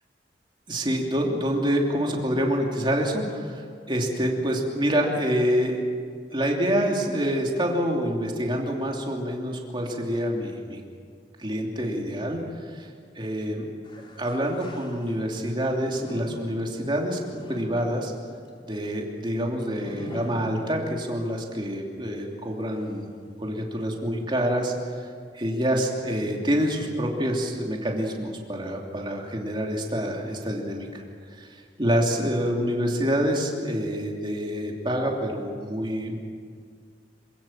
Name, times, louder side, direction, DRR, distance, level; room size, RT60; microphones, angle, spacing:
voice 1, 0.7-5.8 6.3-10.8 11.4-12.9 13.1-13.7 14.2-17.2 17.5-18.1 18.6-23.1 23.4-25.1 25.3-31.0 31.3-36.2, equal, 25° right, 0 dB, 3.0 m, -27 dB
sound 1, 13.8-15.4 15.9-21.2 21.6-21.7 22.6-22.7, equal, 30° left, 2.5 m, -43 dB
26.5 x 17.0 x 7.4 m, 2.1 s
head